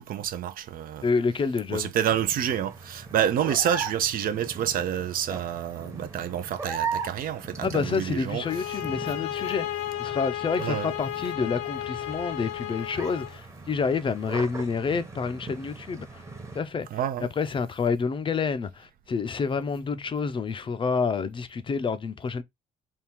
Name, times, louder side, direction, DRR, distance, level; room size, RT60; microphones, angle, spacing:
voice 1, 0.0-1.1 1.7-8.4 10.6-10.9 16.9-17.3, right 10 dB, 55° right, 0.6 m, -28 dB
voice 2, 1.0-1.9 7.6-16.2 16.5-16.9 17.2-22.4, left 5 dB, 30° left, 0.5 m, -28 dB
sound 1, 2.1-16.6, right 5 dB, 15° right, 1.0 m, -39 dB
sound 2, 8.4-13.4, left 14 dB, 90° left, 0.5 m, -33 dB
3.6 x 2.3 x 4.3 m
cardioid pair, 110°, 17 cm